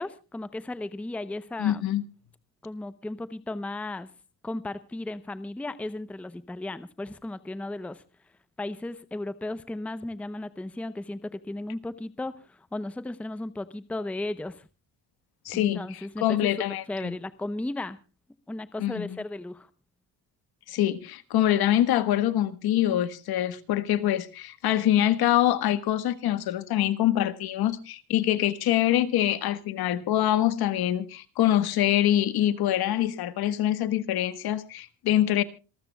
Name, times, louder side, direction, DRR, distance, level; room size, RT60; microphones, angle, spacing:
voice 1, 0.0-1.9 2.6-4.1 4.4-8.0 8.6-14.7 15.5-16.5 16.9-18.0 18.5-19.7, left 2 dB, 5° left, 0.7 m, -35 dB
voice 2, 1.6-2.0 15.4-17.1 18.8-19.2 20.7-35.4, left 12 dB, 65° left, 1.4 m, -25 dB
27.0 x 13.5 x 2.3 m
cardioid pair, 160°, 39 cm